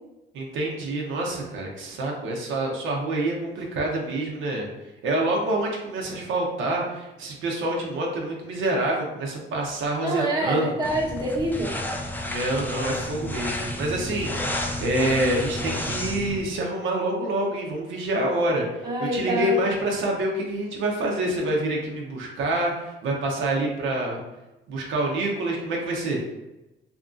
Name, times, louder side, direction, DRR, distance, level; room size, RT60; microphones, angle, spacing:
voice 1, 0.3-4.7 5.0-10.7 12.2-24.2 24.7-26.2, right 1 dB, 80° right, -1 dB, 0.6 m, -27 dB
voice 2, 10.0-11.7 18.8-19.6, right 1 dB, 20° right, -4 dB, 0.8 m, -26 dB
sound 1, 10.8-16.4, left 1 dB, 10° left, 0.3 m, -31 dB
2.8 x 2.4 x 2.4 m, 1.0 s
cardioid pair, 90°, 20 cm